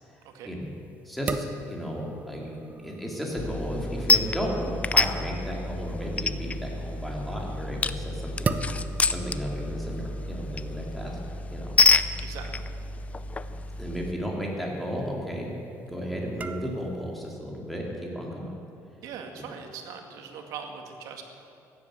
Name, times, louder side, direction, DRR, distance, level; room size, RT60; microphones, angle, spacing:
sound 1, 0.6-17.4, right 4 dB, 25° right, 0.7 m, -41 dB
voice 1, 1.0-2.5 2.8-8.6 9.1-11.2 11.5-11.7 13.8-15.5 15.9-18.5, equal, ahead, -2 dB, 3.2 m, -33 dB
sound 2, 3.4-14.1, left 3 dB, 25° left, 0.5 m, -28 dB
voice 2, 12.2-12.7 19.0-21.2, right 6 dB, 80° right, 4 dB, 2.2 m, -41 dB
16.0 x 11.0 x 8.0 m, 2.8 s
cardioid pair, 130°, 6 cm